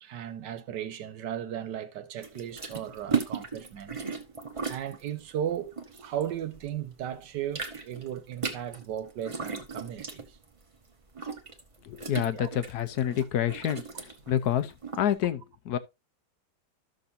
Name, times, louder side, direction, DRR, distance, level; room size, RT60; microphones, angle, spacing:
voice 1, 0.0-4.0 4.7-10.4 12.3-12.5, right 10 dB, 90° right, 1.5 m, -36 dB
sound 1, 2.2-6.8 7.1-15.1, right 5 dB, 25° right, 0.8 m, -36 dB
voice 2, 11.8-13.8 14.3-15.8, left 10 dB, 70° left, 1.2 m, -28 dB
13.0 x 6.4 x 2.6 m
omnidirectional pair, 1.8 m